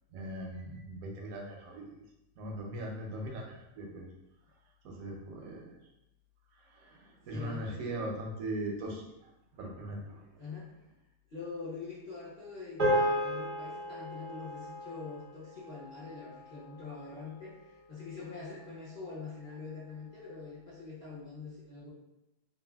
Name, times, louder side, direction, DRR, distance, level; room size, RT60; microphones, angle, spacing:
voice 1, 0.1-1.8 2.4-4.1 4.8-5.7 7.3-9.0 9.6-10.1, right 1 dB, 70° right, 0 dB, 0.9 m, -39 dB
voice 2, 7.2-7.8 10.4-10.7 11.3-21.9, left 4 dB, 60° left, -10 dB, 0.5 m, -44 dB
sound 1, 12.8-17.3, equal, 35° right, 0.5 m, -34 dB
3.2 x 2.4 x 2.2 m, 0.92 s
omnidirectional pair, 1.8 m